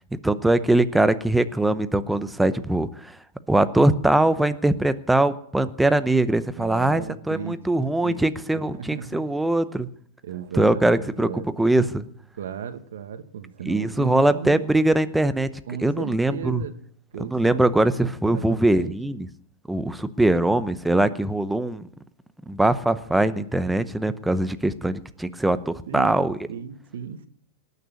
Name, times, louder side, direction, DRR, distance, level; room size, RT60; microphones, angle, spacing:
voice 1, 0.2-3.2 3.5-9.9 10.5-12.0 13.7-15.5 15.8-16.6 17.2-19.3 19.7-21.9 22.5-26.4, right 1 dB, 5° right, 13 dB, 0.8 m, -22 dB
voice 2, 6.6-8.3 8.7-9.3 10.2-11.5 12.4-14.6 15.7-16.8 17.1-17.6 17.9-18.9 25.9-27.3, right 8 dB, 85° right, 10 dB, 1.6 m, -36 dB
18.5 x 6.8 x 9.5 m, 0.64 s
supercardioid pair, 145°, 0 cm